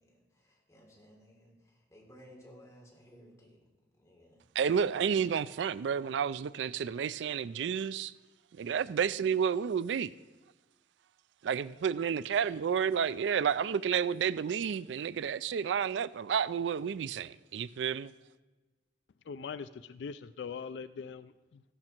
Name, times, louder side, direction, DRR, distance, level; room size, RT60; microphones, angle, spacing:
voice 1, 0.0-3.6 3.9-4.4, equal, 15° left, -2 dB, 3.4 m, -57 dB
voice 2, 4.6-8.1 8.5-10.1 11.4-18.1, right 7 dB, 80° right, 18 dB, 0.4 m, -31 dB
voice 3, 19.3-21.6, left 6 dB, 70° left, 14 dB, 0.3 m, -42 dB
14.5 x 12.0 x 4.4 m, 1.2 s
head